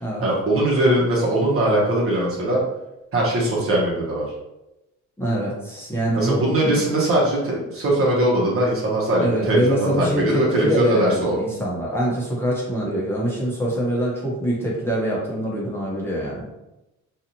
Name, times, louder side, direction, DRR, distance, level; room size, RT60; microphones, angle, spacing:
voice 1, 0.2-2.6 3.1-4.2 6.1-11.4, right 1 dB, 50° right, -4 dB, 1.0 m, -21 dB
voice 2, 5.2-6.8 9.2-16.5, right 1 dB, 10° left, -6 dB, 0.9 m, -24 dB
2.6 x 2.4 x 2.9 m, 0.94 s
cardioid pair, 90°, 30 cm